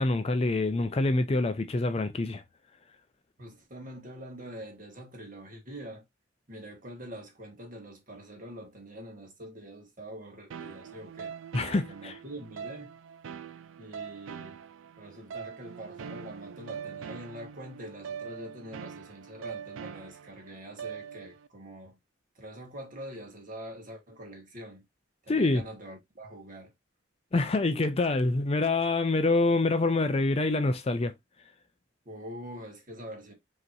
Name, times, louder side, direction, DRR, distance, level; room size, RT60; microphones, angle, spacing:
voice 1, 0.0-2.4 11.5-12.2 25.3-25.6 27.3-31.1, left 2 dB, 30° left, 0.4 m, -26 dB
voice 2, 3.4-6.0 6.5-11.3 11.9-12.9 13.8-14.6 15.0-22.0 22.3-24.9 25.2-26.7 32.0-33.3, right 1 dB, 45° right, 1.5 m, -44 dB
sound 1, 10.5-21.5, right 7 dB, 80° right, 0.4 m, -43 dB
5.3 x 2.9 x 2.5 m
head